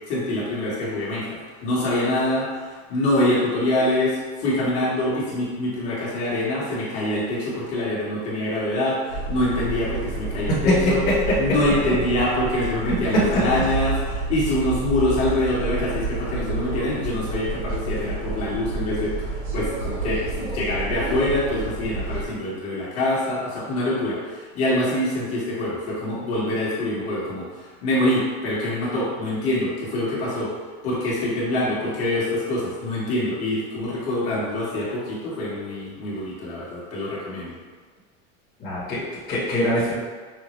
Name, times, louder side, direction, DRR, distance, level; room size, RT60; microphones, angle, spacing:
voice 1, 0.1-2.6 2.9-11.0 11.4-30.5 30.8-37.5, left 1 dB, 45° left, -7 dB, 1.3 m, -25 dB
sound 1, 9.1-22.2, right 3 dB, 80° right, 1.3 m, -29 dB
voice 2, 38.6-39.9, equal, 25° left, -9 dB, 1.2 m, -23 dB
5.5 x 2.0 x 3.1 m, 1.4 s
supercardioid pair, 140°, 34 cm